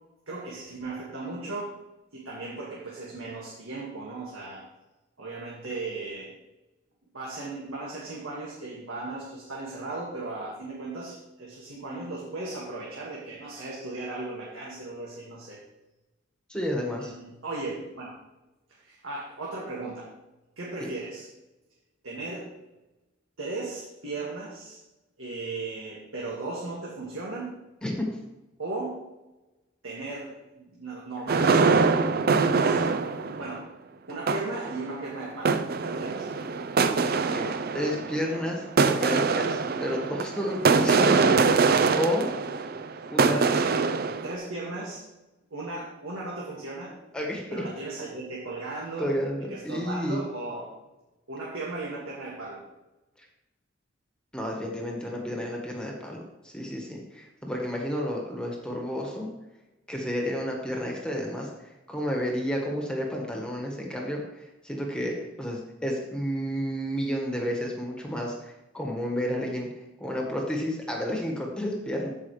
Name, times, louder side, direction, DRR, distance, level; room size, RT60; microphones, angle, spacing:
voice 1, 0.3-1.7 2.1-4.7 5.2-6.3 7.1-15.6 17.0-18.1 18.8-20.1 20.6-21.3 22.0-22.5 23.4-24.8 25.2-27.6 28.6-29.0 29.8-32.1 32.5-33.7 34.1-36.3 42.9-43.9 44.2-45.0 45.5-47.0 47.5-49.1 49.5-50.7 51.3-52.6, right 2 dB, 90° right, -5 dB, 1.9 m, -36 dB
voice 2, 16.5-17.1 27.8-28.0 37.2-42.3 43.1-43.6 47.1-47.6 49.0-50.2 53.2-53.3 54.3-59.3 59.9-69.7 70.0-72.1, equal, 5° left, -1 dB, 1.5 m, -31 dB
sound 1, 31.3-33.6 34.1-34.9 35.5-44.3, right 4 dB, 50° right, 0.5 m, -24 dB
14.5 x 5.3 x 3.2 m, 1.0 s
head